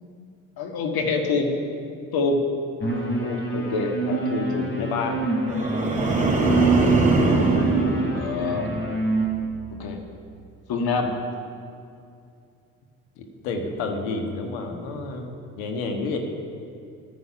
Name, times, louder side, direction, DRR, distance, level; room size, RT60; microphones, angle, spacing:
voice 1, 0.6-1.5 2.1-2.4 3.2-4.9 6.8-7.0 8.1-8.7 9.8-10.0 10.7-11.1, left 3 dB, 55° left, 3 dB, 1.9 m, -26 dB
sound 1, 2.8-9.3, right 2 dB, 25° left, 3.6 m, -27 dB
voice 2, 4.8-5.2 13.2-15.2 15.6-16.2, left 3 dB, 75° left, 3 dB, 1.6 m, -29 dB
sound 2, 5.5-8.9 9.3-9.7, right 3 dB, 15° right, 3.1 m, -22 dB
13.0 x 9.8 x 5.9 m, 2.5 s
hypercardioid pair, 50°, 43 cm